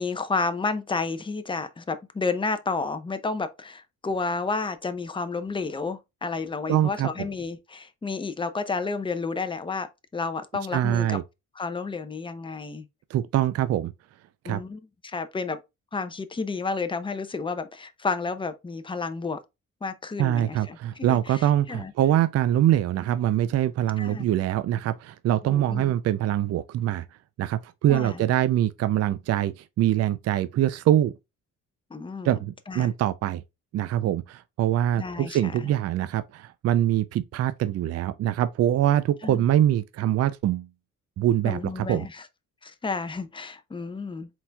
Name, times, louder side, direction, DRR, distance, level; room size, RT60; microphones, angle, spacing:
voice 1, 0.0-9.9 10.1-11.2 11.5-12.9 14.4-15.6 15.9-19.4 19.8-21.9 24.0-24.3 25.5-25.9 27.9-28.2 31.9-32.4 32.7-32.9 35.0-35.7 39.2-39.5 41.4-42.3 42.6-44.3, left 4 dB, 15° left, 0.6 m, -31 dB
voice 2, 6.7-7.1 10.7-11.2 13.1-13.9 14.4-14.6 20.2-27.0 27.4-31.1 32.2-33.4 33.7-40.7 41.2-42.0, right 12 dB, 55° right, 0.4 m, -24 dB
4.2 x 4.0 x 2.3 m
cardioid pair, 90°, 30 cm